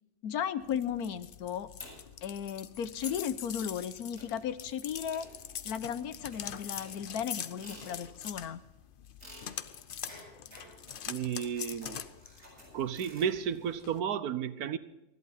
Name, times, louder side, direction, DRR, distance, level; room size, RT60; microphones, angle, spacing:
voice 1, 0.2-1.7 2.2-5.3 5.6-8.6, left 8 dB, 80° left, 14 dB, 1.3 m, -35 dB
sound 1, 0.6-14.0, left 8 dB, 55° left, 0.6 m, -44 dB
sound 2, 1.8-2.3 2.7-2.8 3.0-3.3 4.2-4.5 5.1-5.8 6.3-8.3 9.2-13.3, equal, 45° right, 8.2 m, -53 dB
voice 2, 11.1-12.0 12.7-14.8, right 8 dB, 85° right, 14 dB, 1.4 m, -32 dB
20.0 x 14.0 x 4.1 m, 0.90 s
omnidirectional pair, 1.6 m